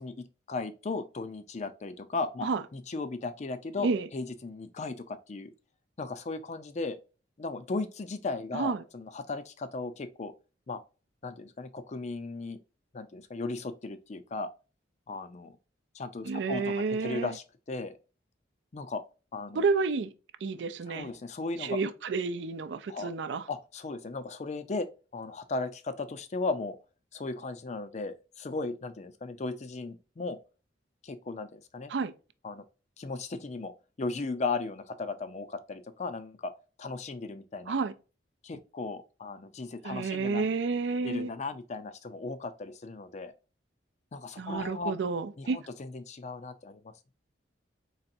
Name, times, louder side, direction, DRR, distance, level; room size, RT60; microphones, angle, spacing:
voice 1, 0.0-5.5 6.0-7.0 7.4-10.3 10.7-10.8 11.2-12.6 12.9-14.5 15.1-15.6 15.9-18.0 18.7-19.0 19.3-19.6 20.9-21.8 22.9-23.1 23.5-24.9 25.1-26.8 27.1-30.4 31.0-31.9 32.4-32.6 33.0-33.7 34.0-36.5 36.8-37.7 38.4-40.5 41.0-43.3 44.1-44.9 45.4-46.9, left 3 dB, 40° left, 0.4 m, -36 dB
voice 2, 8.5-8.8 16.2-17.4 19.5-20.1 20.4-21.1 21.6-23.5 31.9-32.1 37.7-37.9 39.8-41.3 44.4-45.6, right 4 dB, 70° right, 0.4 m, -30 dB
4.1 x 3.2 x 2.6 m
head